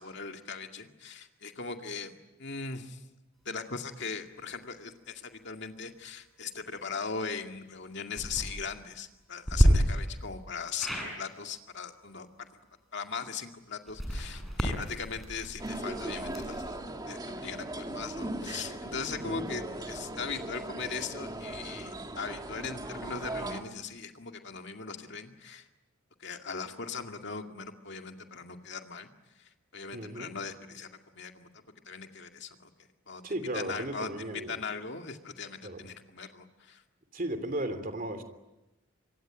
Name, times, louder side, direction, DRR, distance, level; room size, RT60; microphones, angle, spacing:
voice 1, 0.0-3.0 3.5-12.5 12.9-16.8 17.1-25.6 26.2-29.1 29.7-31.5 31.9-32.7 33.1-36.8, left 5 dB, 55° left, 5 dB, 2.2 m, -39 dB
sound 1, 8.1-8.4 9.5-9.7 10.8-11.1 13.9-16.7, equal, ahead, 7.2 m, -30 dB
sound 2, 15.6-23.6, right 1 dB, 20° right, 2.0 m, -38 dB
voice 2, 19.2-19.6 29.9-30.3 33.2-34.6 35.6-35.8 37.1-38.2, right 1 dB, 40° right, 9 dB, 3.0 m, -35 dB
26.0 x 23.5 x 9.1 m, 0.99 s
head